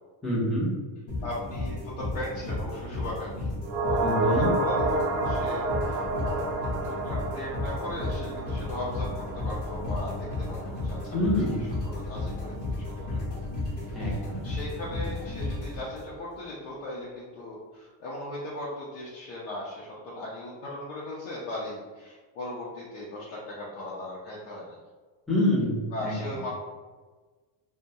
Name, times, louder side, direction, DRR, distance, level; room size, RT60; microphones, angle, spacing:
voice 1, 0.2-0.7 4.0-4.5 11.1-11.6 13.9-14.4 25.3-26.1, left 1 dB, ahead, -9 dB, 0.4 m, -26 dB
sound 1, 1.1-16.3, left 2 dB, 40° left, 0.7 m, -33 dB
voice 2, 1.2-6.5 6.8-12.9 13.4-13.5 13.7-24.8 25.9-26.5, left 1 dB, 80° left, -6 dB, 0.7 m, -38 dB
Heavenly Pad Verb, 3.6-12.1 12.4-12.5, right 2 dB, 60° right, 0.5 m, -31 dB
2.3 x 2.1 x 2.7 m, 1.3 s
cardioid pair, 165°, 48 cm